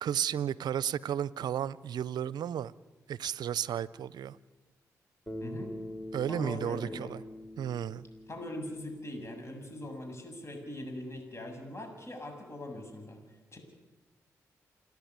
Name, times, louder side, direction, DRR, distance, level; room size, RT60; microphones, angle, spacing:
voice 1, 0.0-2.7 3.1-4.4 6.1-7.2 7.6-8.1, right 9 dB, 70° right, 21 dB, 0.6 m, -33 dB
Bass guitar, 5.3-9.6, left 1 dB, 15° left, 4.3 m, -44 dB
voice 2, 5.4-5.7 6.3-7.1 8.3-13.2 13.5-13.6, left 1 dB, 40° left, 4 dB, 7.2 m, -41 dB
29.0 x 10.5 x 9.5 m, 1.2 s
supercardioid pair, 45°, 7 cm